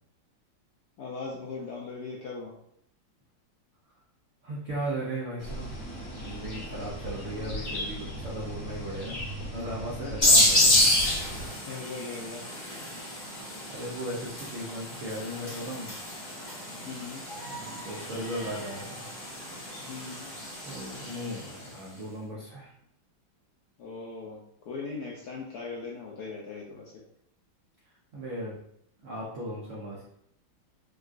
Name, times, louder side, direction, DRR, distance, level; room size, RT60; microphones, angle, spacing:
voice 1, 1.0-2.5 6.8-6.9 10.0-10.3 11.7-12.4 16.8-17.2 19.9-20.3 23.8-24.4 24.6-26.9, left 4 dB, 75° left, -3 dB, 0.9 m, -39 dB
voice 2, 4.4-5.8 6.1-9.2 9.5-10.9 13.7-16.0 17.5-19.0 20.6-22.7 28.1-28.6 29.0-30.0, right 1 dB, 75° right, -6 dB, 0.7 m, -37 dB
sound 1, 5.4-11.5, equal, 55° left, 1.1 m, -37 dB
sound 2, 10.2-21.6, left 1 dB, 30° left, 0.8 m, -28 dB
3.6 x 2.3 x 2.4 m, 0.72 s
omnidirectional pair, 2.2 m